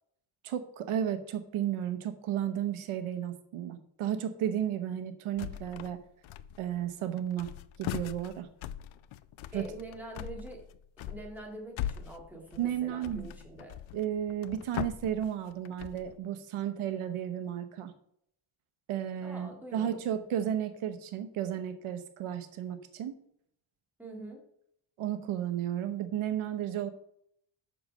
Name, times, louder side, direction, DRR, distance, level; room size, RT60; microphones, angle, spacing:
voice 1, 0.4-6.0 6.6-7.5 7.8-8.5 9.5-9.7 12.6-13.3 13.9-17.9 18.9-23.2 25.0-26.9, right 10 dB, 80° right, 10 dB, 1.0 m, -33 dB
sound 1, 5.4-6.0 6.2-6.8 7.2-16.2, left 11 dB, 70° left, 0.6 m, -40 dB
voice 2, 9.5-10.7 11.0-13.8 19.2-20.0 24.0-24.4, right 1 dB, 5° right, -1 dB, 2.1 m, -45 dB
7.9 x 6.4 x 5.4 m, 0.71 s
cardioid pair, 150°, 49 cm